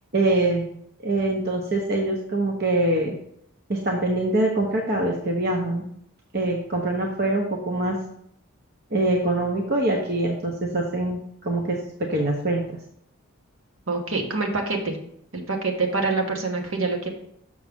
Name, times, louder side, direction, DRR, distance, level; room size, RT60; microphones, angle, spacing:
voice 1, 0.1-0.7 1.0-3.2 3.7-5.8 6.3-8.0 8.9-12.8, right 2 dB, 45° right, 1 dB, 0.8 m, -24 dB
voice 2, 13.9-15.0 15.3-17.1, right 3 dB, 65° right, 2 dB, 1.2 m, -26 dB
6.4 x 6.2 x 3.6 m, 0.71 s
head